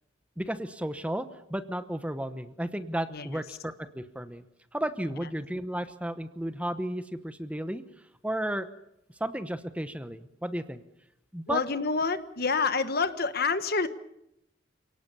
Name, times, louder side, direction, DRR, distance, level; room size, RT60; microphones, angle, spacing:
voice 1, 0.4-4.4 4.7-7.8 8.2-8.7 9.2-10.8 11.3-11.6, right 1 dB, 5° right, 11 dB, 1.0 m, -33 dB
voice 2, 3.1-3.4 11.5-13.9, left 4 dB, 55° left, 11 dB, 1.4 m, -28 dB
28.5 x 18.5 x 6.9 m, 0.80 s
head